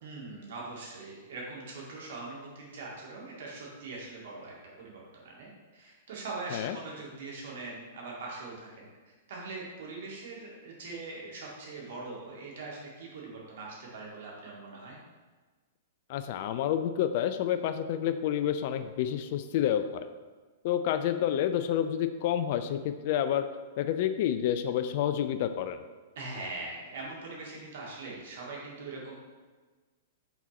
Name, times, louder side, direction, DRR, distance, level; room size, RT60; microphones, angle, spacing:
voice 1, 0.0-8.9 9.3-15.0 26.2-29.1, right 3 dB, 60° right, -3 dB, 2.0 m, -42 dB
voice 2, 16.1-20.1 20.6-23.5 23.8-25.8, left 10 dB, 50° left, 10 dB, 0.4 m, -29 dB
6.0 x 4.2 x 4.1 m, 1.3 s
hypercardioid pair, 110°, 0 cm